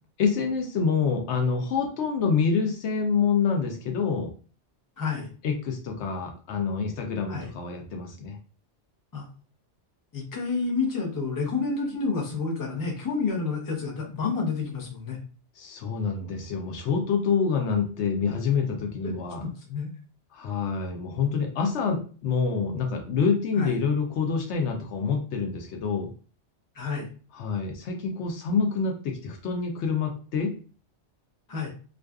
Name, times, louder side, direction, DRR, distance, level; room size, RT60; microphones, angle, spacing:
voice 1, 0.2-4.3 5.4-8.4 15.6-19.4 20.3-26.1 27.3-30.5, left 5 dB, 75° left, 3 dB, 0.9 m, -27 dB
voice 2, 5.0-5.3 7.3-7.5 9.1-9.3 10.1-15.2 19.0-19.1 19.4-19.9 23.6-23.8 26.7-27.1 31.5-31.7, left 4 dB, 20° left, -1 dB, 0.6 m, -29 dB
2.5 x 2.2 x 2.3 m, 0.38 s
omnidirectional pair, 1.2 m